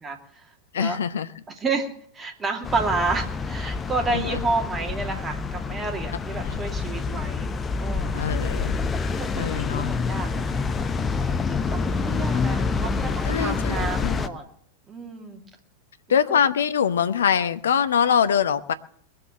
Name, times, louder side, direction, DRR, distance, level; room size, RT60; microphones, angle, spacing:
voice 1, 0.0-0.5 0.8-1.0 1.6-1.9 2.1-7.5 7.8-8.2 9.2-10.6 11.3-14.5 14.9-15.4 16.1-16.4, right 3 dB, 20° right, 3 dB, 2.6 m, -30 dB
voice 2, 0.7-1.3 4.1-4.4 6.4-6.6 8.1-8.7 9.4-9.9 13.2-14.2 16.1-18.7, left 8 dB, 65° left, 12 dB, 0.9 m, -23 dB
sound 1, 2.6-14.3, left 4 dB, 20° left, 0.9 m, -27 dB
21.0 x 7.8 x 7.5 m, 0.62 s
figure-of-eight pair, 90°, 0 cm